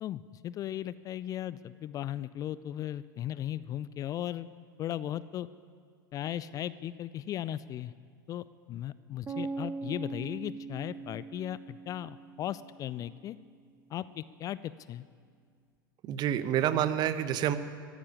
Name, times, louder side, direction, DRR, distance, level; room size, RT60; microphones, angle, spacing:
voice 1, 0.0-4.5 4.8-5.5 6.1-7.9 8.3-13.4 13.9-15.0, left 12 dB, 30° left, 17 dB, 0.4 m, -37 dB
sound 1, 9.3-13.2, right 4 dB, 20° right, 1.1 m, -41 dB
voice 2, 16.0-17.6, right 10 dB, 35° right, 12 dB, 0.9 m, -28 dB
14.5 x 9.8 x 9.9 m, 2.1 s
figure-of-eight pair, 85°, 12 cm